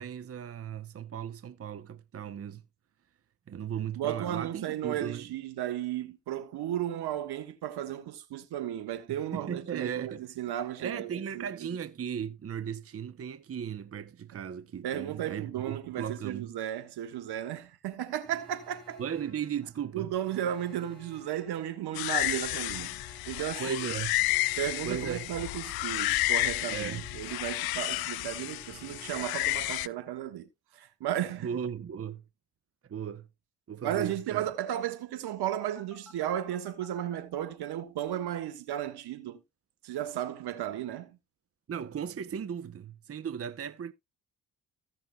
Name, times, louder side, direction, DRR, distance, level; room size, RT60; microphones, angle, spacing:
voice 1, 0.0-2.6 3.5-5.3 9.1-10.3 10.8-16.5 19.0-20.1 23.6-24.1 24.8-25.3 26.7-27.1 31.4-32.2 32.9-33.3 33.7-34.4 41.7-43.9, right 8 dB, 35° right, 0.8 m, -36 dB
voice 2, 4.0-11.7 14.8-19.0 19.9-23.8 24.6-30.5 30.7-31.5 33.8-39.4 39.8-41.2, right 11 dB, 70° right, 1.4 m, -34 dB
Alarm, 18.2-30.1 35.6-37.2, left 1 dB, ahead, 6.0 m, -55 dB
sound 1, 22.0-29.9, left 18 dB, 65° left, 0.5 m, -31 dB
15.5 x 6.1 x 2.3 m
hypercardioid pair, 50°, 40 cm